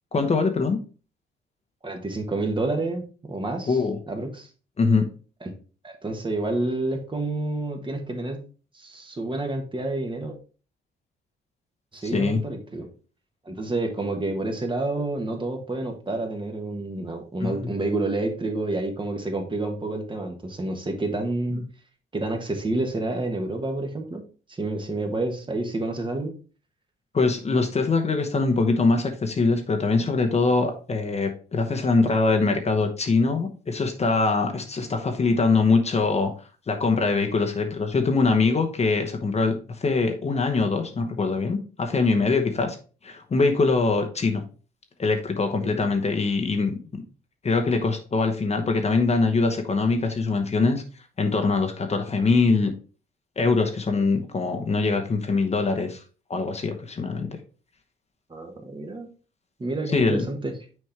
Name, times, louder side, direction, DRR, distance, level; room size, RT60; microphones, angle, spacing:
voice 1, 0.1-0.8 3.7-4.0 4.8-5.1 12.0-12.4 17.4-17.7 27.1-36.3 36.7-42.8 43.0-44.4 45.0-47.0 47.4-50.8 51.2-52.7 53.4-56.0 56.3-57.4 59.9-60.2, left 3 dB, 35° left, 4 dB, 1.0 m, -23 dB
voice 2, 1.8-3.8 4.1-4.5 5.4-5.6 5.8-8.4 8.7-10.4 11.9-12.9 13.4-21.6 22.1-24.2 24.5-26.3 45.6-45.9 58.3-59.1 59.6-60.5, right 2 dB, 25° right, 4 dB, 1.4 m, -29 dB
6.4 x 4.3 x 3.3 m, 0.36 s
cardioid pair, 90°, 20 cm